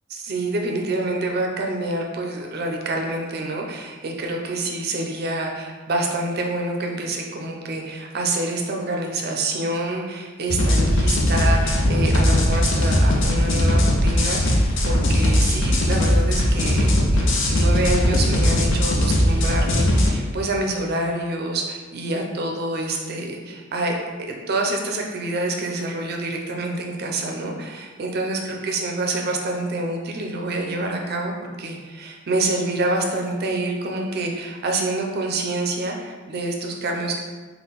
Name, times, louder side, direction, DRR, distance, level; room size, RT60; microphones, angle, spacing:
voice 1, 0.1-16.9 17.1-24.0 24.3-37.2, right 2 dB, 50° right, 1 dB, 0.5 m, -27 dB
sound 1, 10.5-20.1, left 1 dB, 65° left, 0.6 m, -19 dB
3.7 x 2.2 x 4.0 m, 1.4 s
head